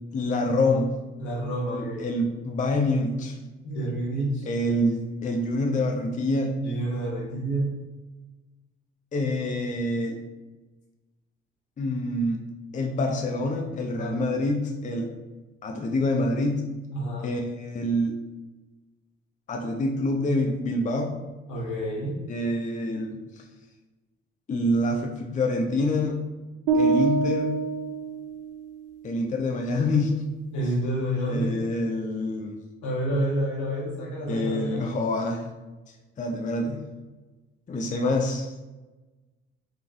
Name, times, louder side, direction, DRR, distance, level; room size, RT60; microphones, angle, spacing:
voice 1, 0.1-0.9 1.7-3.4 4.5-6.5 9.1-10.2 11.8-12.4 12.7-15.1 15.6-16.7 17.2-18.2 19.5-21.2 22.3-23.4 24.5-26.2 26.7-27.6 29.0-30.2 31.3-32.6 34.3-35.5 36.2-36.9 37.7-38.5, left 1 dB, 25° left, 2 dB, 0.5 m, -26 dB
voice 2, 1.2-2.1 3.6-4.4 6.6-7.8 13.9-14.2 16.9-17.3 21.5-22.3 30.5-31.5 32.8-34.9, right 1 dB, 70° left, -4 dB, 1.4 m, -29 dB
sound 1, 26.7-28.9, right 4 dB, 85° right, 0.5 m, -25 dB
4.0 x 3.3 x 2.5 m, 1.2 s
hypercardioid pair, 50°, 31 cm